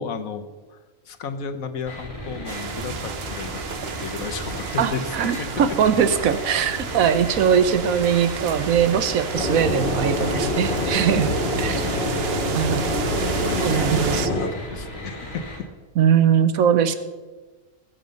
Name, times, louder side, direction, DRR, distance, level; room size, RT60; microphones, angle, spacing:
voice 1, 0.0-5.5 12.9-15.5, left 5 dB, 85° left, 8 dB, 1.4 m, -34 dB
sound 1, 1.8-15.6, left 1 dB, 25° left, 3.9 m, -36 dB
sound 2, 2.5-14.3, right 7 dB, 55° right, 0.9 m, -32 dB
voice 2, 4.8-11.3 11.6-11.9 12.5-12.9 13.6-14.3 16.0-16.9, right 8 dB, 90° right, 11 dB, 1.3 m, -21 dB
sound 3, 9.3-14.5, left 1 dB, 40° left, 1.8 m, -25 dB
20.0 x 7.7 x 5.3 m, 1.3 s
omnidirectional pair, 1.4 m